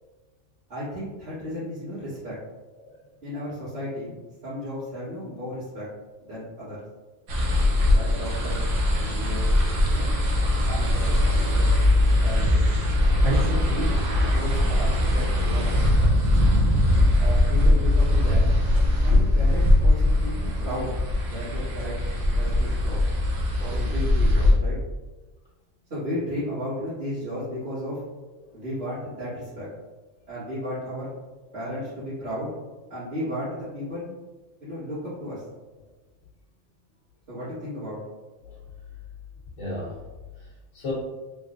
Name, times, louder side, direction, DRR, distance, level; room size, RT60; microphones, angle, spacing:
voice 1, 0.7-2.4 3.2-4.1 4.4-5.9 6.2-6.8 7.9-8.6 9.0-9.5 9.9-10.1 10.6-11.7 12.2-12.6 13.4-16.1 17.2-18.5 19.0-21.0 21.3-23.0 23.6-24.8 25.9-28.0 28.5-29.7 30.3-31.1 31.5-32.5 32.9-34.1 34.6-35.4 37.3-38.0, equal, 60° right, -16 dB, 2.0 m, -34 dB
sound 1, 7.3-24.5, left 1 dB, 75° right, 1.1 m, -21 dB
voice 2, 39.6-40.0 40.4-40.9, left 2 dB, 80° left, -8 dB, 1.2 m, -36 dB
3.7 x 3.3 x 2.5 m, 1.2 s
omnidirectional pair, 1.3 m